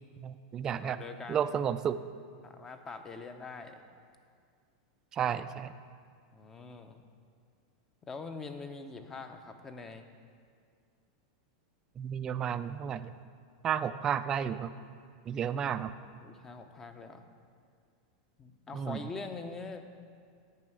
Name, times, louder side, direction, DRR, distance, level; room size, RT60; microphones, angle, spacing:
voice 1, 0.2-1.0 1.3-2.0 5.1-5.7 12.0-13.1 13.6-14.7 15.3-15.9 18.7-19.0, right 8 dB, 25° right, 12 dB, 0.3 m, -32 dB
voice 2, 0.8-1.5 2.4-3.8 6.3-7.0 8.0-10.1 16.2-17.2 18.4-19.8, left 4 dB, 15° left, 8 dB, 0.6 m, -43 dB
9.3 x 5.5 x 7.8 m, 2.1 s
supercardioid pair, 145°, 2 cm